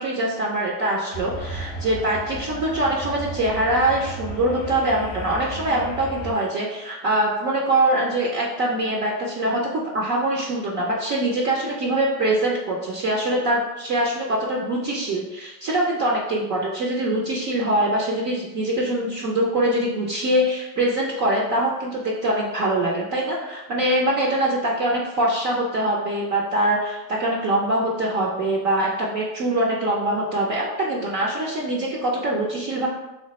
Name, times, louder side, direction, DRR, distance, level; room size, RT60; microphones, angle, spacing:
voice 1, 0.0-32.9, right 1 dB, 35° right, -2 dB, 0.5 m, -23 dB
sound 1, 1.1-6.3, right 1 dB, 30° left, 0.6 m, -34 dB
3.1 x 2.1 x 4.1 m, 0.98 s
supercardioid pair, 130°, 50 cm